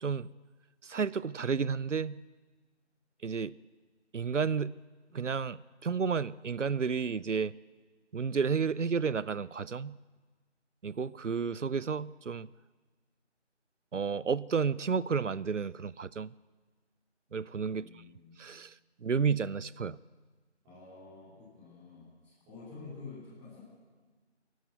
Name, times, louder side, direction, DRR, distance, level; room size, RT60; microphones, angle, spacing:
voice 1, 0.8-2.2 3.2-3.5 4.1-4.8 5.1-7.5 8.1-10.0 10.8-12.5 13.9-16.3 17.3-17.9 18.4-18.7 19.0-20.0, right 5 dB, 90° right, 20 dB, 0.7 m, -31 dB
voice 2, 17.7-18.4 20.6-23.6, left 4 dB, 5° right, -16 dB, 3.6 m, -49 dB
28.0 x 11.5 x 8.1 m, 1.4 s
figure-of-eight pair, 170°, 35 cm